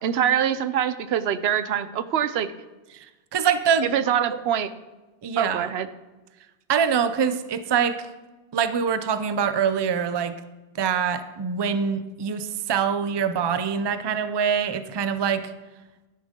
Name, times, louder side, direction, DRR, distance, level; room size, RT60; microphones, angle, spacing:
voice 1, 0.0-2.5 3.8-4.7 5.4-5.9, right 9 dB, 80° right, 13 dB, 0.9 m, -24 dB
voice 2, 3.3-3.9 4.2-4.3 5.2-5.7 6.7-8.0 8.5-10.4 10.8-15.5, right 7 dB, 35° right, 11 dB, 0.4 m, -24 dB
11.5 x 10.0 x 3.7 m, 1.1 s
omnidirectional pair, 1.0 m